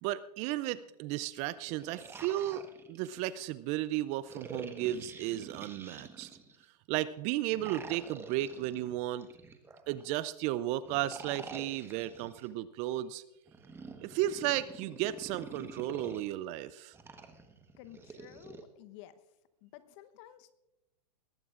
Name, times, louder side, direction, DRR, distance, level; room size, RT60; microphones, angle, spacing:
voice 1, 0.0-2.6 2.9-6.3 6.9-9.3 9.9-13.2 14.0-16.9, right 14 dB, 35° right, 17 dB, 0.4 m, -34 dB
sound 1, 1.5-3.5 4.3-6.6 7.5-10.1 10.9-12.5 13.5-16.3 16.9-18.6, right 4 dB, 10° right, 1.2 m, -48 dB
voice 2, 17.8-19.2 19.6-20.5, left 13 dB, 45° left, 12 dB, 1.0 m, -52 dB
20.5 x 15.5 x 2.5 m, 0.94 s
hypercardioid pair, 120°, 21 cm